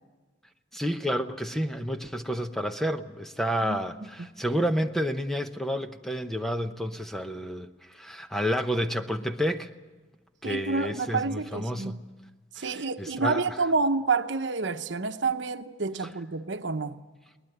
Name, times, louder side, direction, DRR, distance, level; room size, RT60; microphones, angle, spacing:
voice 1, 0.7-9.7 10.4-12.0 12.6-13.5, equal, ahead, 0.8 m, -30 dB
voice 2, 3.6-4.3 10.4-12.0 12.6-17.0, right 4 dB, 75° right, 0.9 m, -29 dB
22.0 x 19.0 x 8.0 m
head